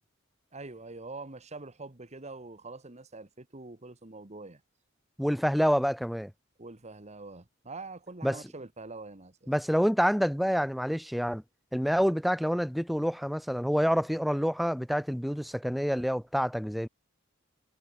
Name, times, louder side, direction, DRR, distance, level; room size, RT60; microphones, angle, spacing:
voice 1, 0.5-4.6 6.6-9.5, right 3 dB, 35° right, 1.7 m, -44 dB
voice 2, 5.2-6.3 8.2-8.4 9.5-11.4 11.7-16.9, equal, ahead, 1.5 m, -27 dB
head